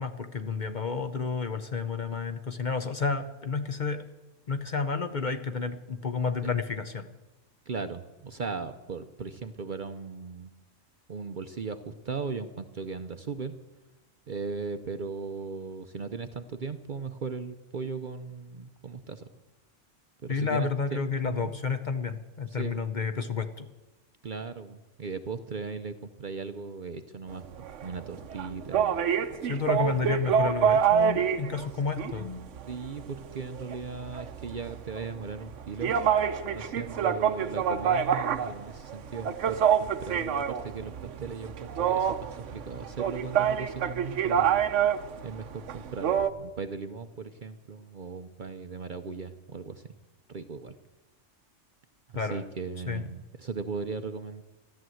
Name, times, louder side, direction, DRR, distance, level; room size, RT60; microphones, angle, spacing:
voice 1, 0.0-4.0 4.5-7.1 20.3-23.7 29.4-32.4 52.1-52.4 52.9-53.0, left 5 dB, 40° left, 8 dB, 0.9 m, -31 dB
voice 2, 7.7-10.5 11.1-13.5 14.3-19.3 20.2-21.6 22.5-22.9 24.2-27.5 27.8-29.0 32.7-35.9 36.5-44.6 45.2-49.8 50.3-50.8 52.1-54.4, right 5 dB, 50° right, 9 dB, 0.7 m, -38 dB
sound 1, 27.3-46.3, right 8 dB, 75° right, 1.1 m, -28 dB
14.0 x 11.0 x 7.7 m, 1.1 s
omnidirectional pair, 1.3 m